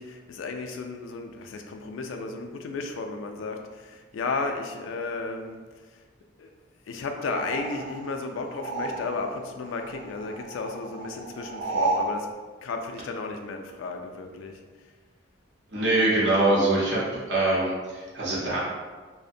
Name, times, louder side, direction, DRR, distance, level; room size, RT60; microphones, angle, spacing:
voice 1, 0.0-5.6 5.9-6.0 6.4-6.5 6.9-12.3 12.6-14.6, left 3 dB, 90° left, 4 dB, 0.3 m, -33 dB
sound 1, 7.2-9.4 9.7-12.1, right 3 dB, 80° right, 0.4 m, -32 dB
voice 2, 15.7-18.6, right 2 dB, 65° right, -6 dB, 0.8 m, -23 dB
2.5 x 2.1 x 2.6 m, 1.4 s
head